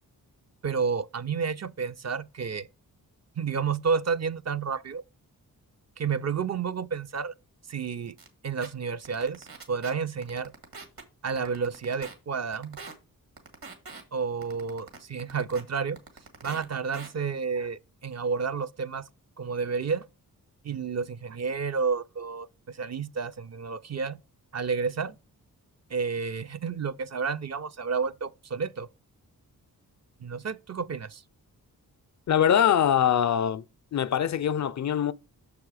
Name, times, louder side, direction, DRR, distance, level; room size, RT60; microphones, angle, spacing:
voice 1, 0.6-2.7 3.4-5.0 6.0-7.3 7.7-8.1 8.4-10.5 11.2-12.8 14.1-16.0 16.4-19.1 19.4-20.0 20.6-24.2 24.5-25.2 25.9-28.9 30.2-31.2, right 5 dB, 45° right, 0.5 m, -30 dB
sound 1, 8.2-8.3 8.6-8.7 9.0-9.9 10.2-11.0 11.4-12.1 12.5-12.9 13.4-14.0 14.4-15.6 16.0-16.6 16.9-17.1, right 4 dB, 70° right, 2.0 m, -42 dB
voice 2, 32.3-33.6 33.9-35.1, left 9 dB, 50° left, 0.4 m, -23 dB
6.6 x 4.8 x 4.8 m
cardioid pair, 65°, 37 cm